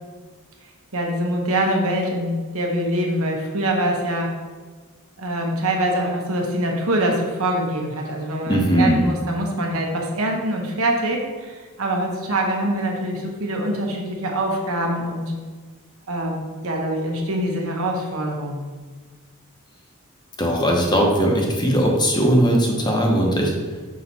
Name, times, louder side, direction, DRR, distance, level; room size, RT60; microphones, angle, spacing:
voice 1, 0.9-4.3 5.2-15.3 16.1-18.6, right 1 dB, 75° right, 1 dB, 1.1 m, -24 dB
voice 2, 8.5-9.0 20.4-23.5, equal, 20° left, 0 dB, 0.9 m, -19 dB
6.1 x 4.5 x 4.2 m, 1.4 s
head